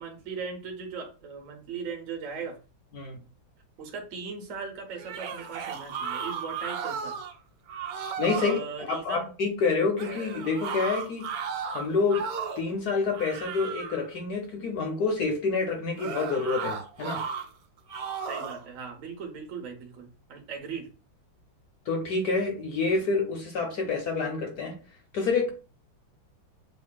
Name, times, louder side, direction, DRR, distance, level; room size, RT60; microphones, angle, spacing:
voice 1, 0.0-2.6 3.8-7.2 8.3-9.3 18.3-20.9, right 5 dB, 50° right, 2 dB, 1.1 m, -38 dB
sound 1, 4.9-7.3 7.7-8.6 10.0-12.7 13.1-14.1 16.0-17.5 17.9-18.6, right 6 dB, 70° right, 0.9 m, -35 dB
voice 2, 8.2-11.3 11.7-12.3 12.6-17.2 21.9-24.8 25.1-25.5, left 4 dB, 60° left, 3 dB, 1.1 m, -28 dB
7.3 x 2.7 x 2.2 m, 0.35 s
omnidirectional pair, 2.2 m